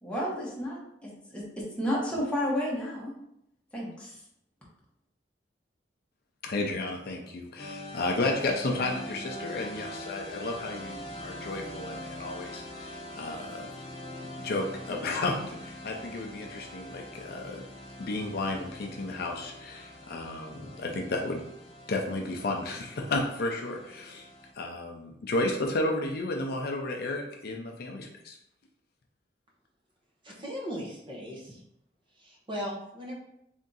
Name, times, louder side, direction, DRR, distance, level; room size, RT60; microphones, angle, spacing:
voice 1, 0.0-3.1 3.7-4.2, equal, 5° left, -6 dB, 1.0 m, -32 dB
voice 2, 6.4-13.7 14.2-17.6 18.0-21.4 21.9-24.3 24.6-28.4, left 2 dB, 60° left, 1 dB, 0.5 m, -32 dB
sound 1, 7.6-24.5, left 1 dB, 35° left, 0.9 m, -43 dB
voice 3, 30.2-31.6 32.2-33.1, equal, 30° right, -3 dB, 0.8 m, -38 dB
3.5 x 2.7 x 3.9 m, 0.77 s
head